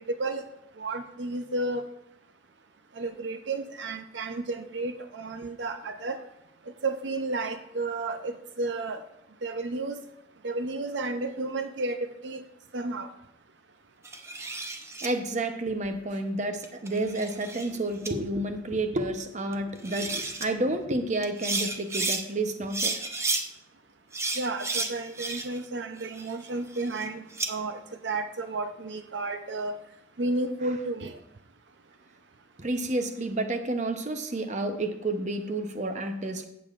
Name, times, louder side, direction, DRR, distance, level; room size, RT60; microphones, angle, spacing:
voice 1, 0.8-1.8 3.0-6.2 6.8-9.0 9.4-10.0 10.4-12.4 12.7-13.1 24.4-29.8 30.2-31.2, right 2 dB, 75° right, 7 dB, 0.6 m, -32 dB
sound 1, 14.0-15.1 16.6-17.7 18.0-18.1 19.5-19.6 19.8-20.5 21.2-22.2 22.7-23.4 24.1-25.6 26.0-27.5, right 3 dB, 15° right, 0.7 m, -32 dB
voice 2, 15.0-23.0 32.6-36.4, right 2 dB, 40° right, 6 dB, 0.8 m, -30 dB
16.0 x 7.0 x 2.5 m, 0.81 s
head